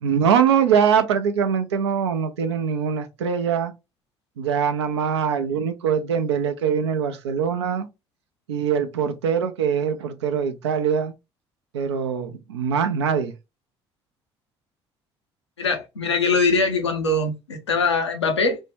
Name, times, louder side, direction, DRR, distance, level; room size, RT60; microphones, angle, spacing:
voice 1, 0.0-3.7 4.4-7.9 8.5-11.1 11.7-13.3, right 7 dB, 80° right, 0.5 m, -22 dB
voice 2, 15.6-18.6, left 3 dB, 85° left, 0.5 m, -22 dB
2.6 x 2.2 x 3.0 m
figure-of-eight pair, 55°, 14 cm